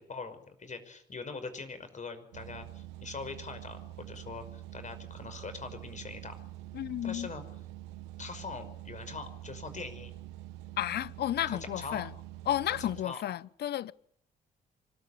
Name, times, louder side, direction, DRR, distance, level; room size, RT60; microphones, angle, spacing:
voice 1, 0.0-6.4 7.0-7.4 8.2-10.1 11.5-12.1 12.8-13.2, left 4 dB, 40° left, 5.6 m, -42 dB
sound 1, 2.3-13.0, right 15 dB, 85° right, 0.9 m, -46 dB
voice 2, 6.7-7.3 10.8-12.1 12.5-13.9, left 12 dB, 65° left, 0.8 m, -32 dB
24.5 x 14.0 x 10.0 m
supercardioid pair, 60°, 19 cm